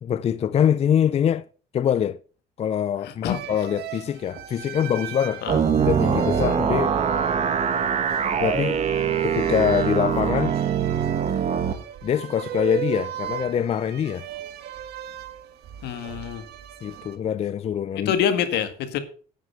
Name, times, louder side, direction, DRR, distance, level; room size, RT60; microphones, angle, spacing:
voice 1, 0.0-1.5 1.7-2.2 2.6-5.4 5.8-7.0 8.4-8.8 9.2-10.6 12.0-14.3 16.8-18.1, left 9 dB, 40° left, 0.5 m, -24 dB
voice 2, 3.0-3.4 5.4-5.6 15.8-16.4 18.0-19.0, left 9 dB, 80° left, 1.8 m, -26 dB
sound 1, 3.3-17.2, right 12 dB, 70° right, 1.6 m, -38 dB
sound 2, 5.5-11.7, right 7 dB, 40° right, 1.7 m, -23 dB
9.5 x 9.1 x 5.5 m
cardioid pair, 110°, 17 cm